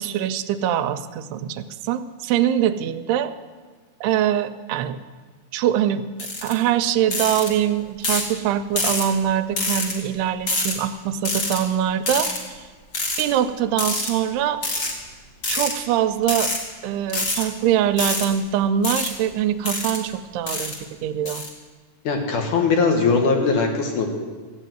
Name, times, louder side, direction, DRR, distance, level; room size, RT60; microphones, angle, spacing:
voice 1, 0.0-3.3 4.0-5.0 5.5-6.1 6.4-12.3 12.6-12.7 13.2-14.6 15.5-16.5 16.8-21.4, right 10 dB, 85° right, 10 dB, 2.7 m, -23 dB
sound 1, 6.2-6.5 7.1-7.5 8.0-8.3 8.8-9.1 9.6-9.9 10.5-10.7 11.2-11.6 12.1-12.4 12.9-13.2 13.8-14.1 14.6-14.9 15.4-15.7 16.2-16.6 17.1-17.4 18.0-18.3 18.8-19.1 19.6-20.0 20.5-20.8 21.3-21.5, left 2 dB, 35° left, 1.8 m, -25 dB
voice 2, 22.0-24.1, left 4 dB, 60° left, 3 dB, 2.5 m, -20 dB
14.0 x 8.3 x 9.1 m, 1.4 s
omnidirectional pair, 4.6 m